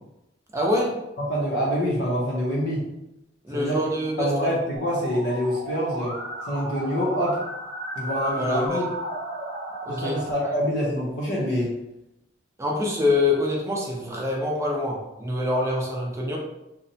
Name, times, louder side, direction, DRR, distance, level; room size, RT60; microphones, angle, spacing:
voice 1, 0.5-1.0 3.4-4.3 8.4-8.8 9.9-10.5 12.6-16.4, left 2 dB, 15° right, -2 dB, 0.5 m, -25 dB
voice 2, 1.2-2.9 3.5-3.8 4.2-6.2 6.5-7.4 8.0-8.9 9.9-11.7, equal, 75° left, -5 dB, 0.7 m, -26 dB
Musical instrument, 4.8-10.3, right 1 dB, 85° right, 0.7 m, -34 dB
2.8 x 2.1 x 2.6 m, 0.89 s
head